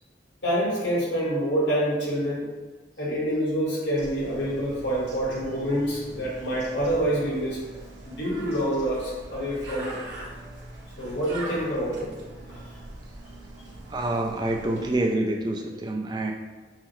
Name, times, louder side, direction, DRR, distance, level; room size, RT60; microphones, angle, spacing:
voice 1, 0.4-2.4 3.0-7.6 8.0-10.0 11.0-12.1 12.5-12.6, equal, 75° left, -5 dB, 1.3 m, -27 dB
Bird, 4.0-15.0, right 1 dB, 65° right, 1.2 m, -42 dB
voice 2, 13.9-16.3, right 1 dB, 25° right, 2 dB, 0.3 m, -27 dB
5.5 x 2.1 x 3.0 m, 1.3 s
head